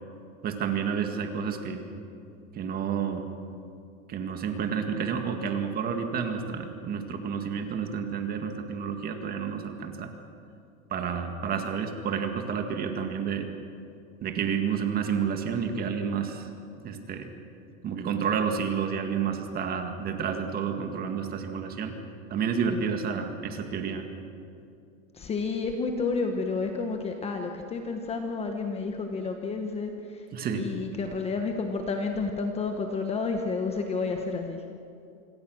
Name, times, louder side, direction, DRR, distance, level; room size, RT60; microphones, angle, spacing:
voice 1, 0.4-1.9 2.5-3.3 4.1-10.1 10.9-13.5 14.2-16.5 16.8-17.3 17.8-21.9 22.3-24.1 30.3-30.7, right 6 dB, 20° right, 6 dB, 1.9 m, -30 dB
voice 2, 25.1-30.2 30.5-34.6, left 4 dB, 15° left, 4 dB, 1.2 m, -30 dB
26.5 x 22.5 x 6.4 m, 2.6 s
supercardioid pair, 155°, 40 cm